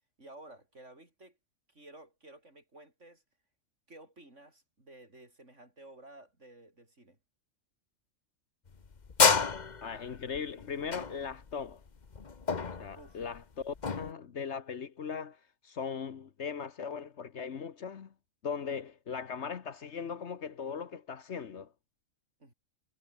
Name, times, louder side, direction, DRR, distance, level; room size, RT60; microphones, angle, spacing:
voice 1, 0.2-1.4 1.7-3.2 3.9-7.2 13.0-13.2 22.4-22.5, right 1 dB, 60° right, 7.0 m, -53 dB
sound 1, 8.7-14.1, left 5 dB, 35° left, 1.2 m, -29 dB
voice 2, 9.8-11.8 12.8-18.1 18.4-21.7, left 6 dB, 60° left, 1.3 m, -39 dB
omnidirectional pair, 1.4 m